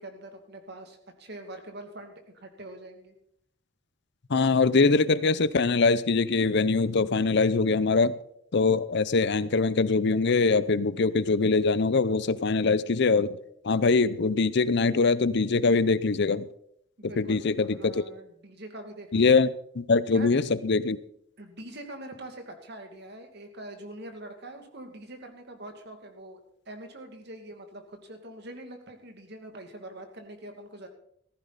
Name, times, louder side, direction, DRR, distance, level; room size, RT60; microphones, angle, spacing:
voice 1, 0.0-3.2 17.0-19.2 20.1-20.3 21.4-26.4 26.7-30.9, right 1 dB, 55° right, 2.4 m, -44 dB
voice 2, 4.3-8.2 8.5-13.4 13.6-16.5 17.2-18.0 19.1-19.5 19.8-21.0, left 4 dB, 60° left, 0.6 m, -23 dB
15.0 x 14.5 x 4.1 m
head